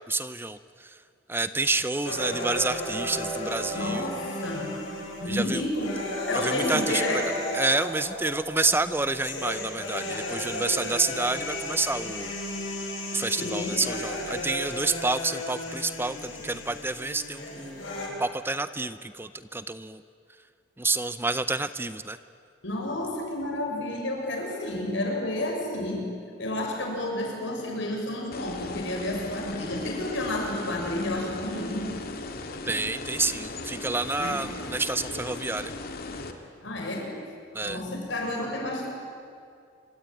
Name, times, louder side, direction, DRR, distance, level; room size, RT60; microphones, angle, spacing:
voice 1, 0.1-1.0 1.3-4.1 5.3-5.7 6.3-7.2 7.5-12.3 13.1-17.8 18.2-20.0 20.8-22.2 32.7-35.7 37.5-37.8, right 3 dB, 10° right, 13 dB, 0.6 m, -29 dB
sound 1, 2.1-18.1, left 1 dB, 90° left, 7.8 m, -34 dB
voice 2, 3.7-4.8 5.2-6.0 6.3-7.3 13.3-13.8 22.6-26.1 26.4-32.0 34.2-34.4 36.6-37.1 37.6-38.9, left 1 dB, 70° left, 0 dB, 6.9 m, -30 dB
sound 2, 28.3-36.3, left 3 dB, 50° left, 2.2 m, -38 dB
26.0 x 24.0 x 9.2 m, 2.3 s
head